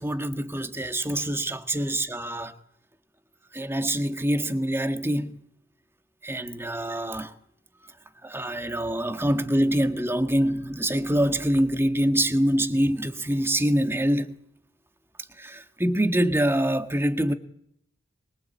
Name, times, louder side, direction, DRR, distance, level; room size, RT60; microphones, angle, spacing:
voice 1, 0.0-2.5 3.5-5.4 6.2-7.3 8.2-14.3 15.4-17.3, right 1 dB, 15° right, 1.7 m, -25 dB
25.5 x 23.0 x 8.7 m
head